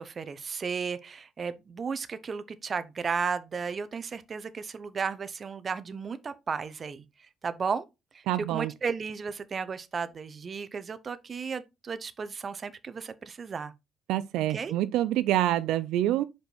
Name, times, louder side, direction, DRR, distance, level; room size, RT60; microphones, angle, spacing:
voice 1, 0.0-7.0 7.4-7.8 8.1-13.7 14.5-14.7, right 5 dB, 35° right, 0.7 m, -34 dB
voice 2, 8.3-8.7 14.1-16.2, right 13 dB, 85° right, 0.4 m, -26 dB
5.3 x 4.5 x 4.5 m
cardioid pair, 115°, 0 cm